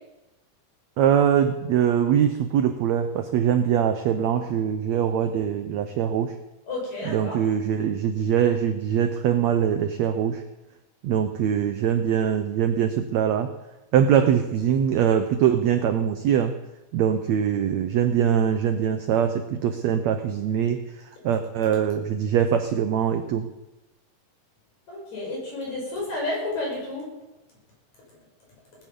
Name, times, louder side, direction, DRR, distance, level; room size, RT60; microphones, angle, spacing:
voice 1, 1.0-6.4 7.1-10.4 11.0-13.5 13.9-16.6 16.9-20.8 21.2-23.5, right 9 dB, 75° right, 8 dB, 1.6 m, -22 dB
voice 2, 6.7-7.4 24.9-27.1, left 2 dB, 55° left, -3 dB, 7.0 m, -31 dB
18.5 x 10.5 x 5.4 m, 1.0 s
omnidirectional pair, 4.0 m